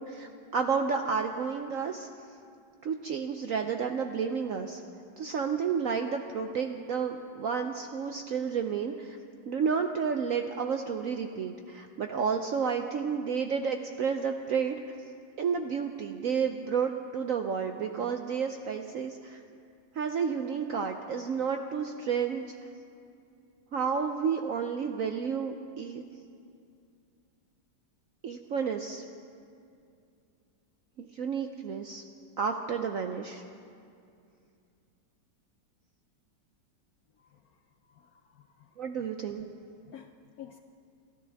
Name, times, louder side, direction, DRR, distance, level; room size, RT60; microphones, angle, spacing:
voice 1, 0.1-2.1 2.8-4.8 5.2-9.2 9.5-14.8 15.4-19.4 20.0-22.5 23.7-26.0 28.2-29.0 31.0-32.0 32.4-33.4 38.8-39.5, right 6 dB, 70° right, 5 dB, 0.8 m, -31 dB
voice 2, 37.9-38.7 39.9-40.1 40.4-40.6, left 11 dB, 70° left, 6 dB, 0.8 m, -50 dB
29.0 x 13.0 x 3.5 m, 2.4 s
omnidirectional pair, 2.1 m